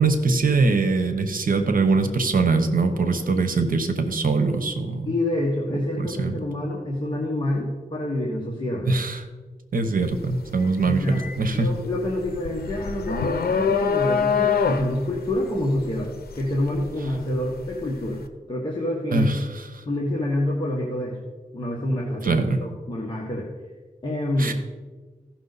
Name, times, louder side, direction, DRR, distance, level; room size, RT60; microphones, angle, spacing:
voice 1, 0.0-5.1 6.0-6.4 8.9-9.2 9.7-11.7 19.1-19.6 22.2-22.6 24.4-24.5, right 3 dB, 65° right, 8 dB, 1.0 m, -22 dB
voice 2, 5.0-8.9 10.8-11.2 11.5-18.2 18.5-19.3 19.8-21.2 21.5-23.5 24.0-24.5, left 1 dB, 30° left, -3 dB, 1.5 m, -27 dB
sound 1, 10.0-10.3 10.7-17.7, left 6 dB, 90° left, 0.7 m, -25 dB
15.5 x 6.1 x 4.1 m, 1.3 s
wide cardioid pair, 100°, 16 cm